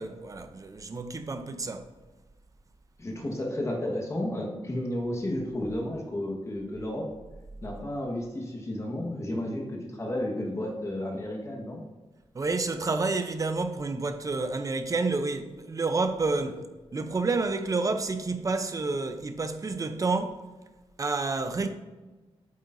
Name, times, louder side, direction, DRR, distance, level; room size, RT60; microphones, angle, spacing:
voice 1, 0.0-1.9 12.3-16.6 16.9-20.5 21.0-21.7, right 3 dB, 30° right, 0.6 m, -29 dB
voice 2, 3.0-7.0 7.6-11.8, left 1 dB, 25° left, 1.4 m, -32 dB
8.6 x 7.9 x 2.7 m
wide cardioid pair, 145°, 11 cm